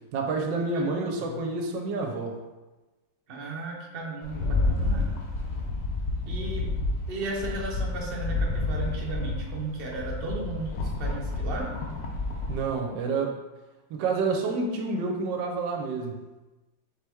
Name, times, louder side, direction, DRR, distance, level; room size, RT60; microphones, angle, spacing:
voice 1, 0.1-2.4 12.5-13.3 13.9-16.2, right 4 dB, 75° right, 3 dB, 1.2 m, -28 dB
voice 2, 0.7-1.4 3.3-5.1 6.3-6.7 7.1-11.7, right 2 dB, 55° right, -2 dB, 0.6 m, -35 dB
Rattle, 4.2-12.7, left 2 dB, 65° left, 1.0 m, -30 dB
4.3 x 3.1 x 3.4 m, 1.1 s
omnidirectional pair, 2.1 m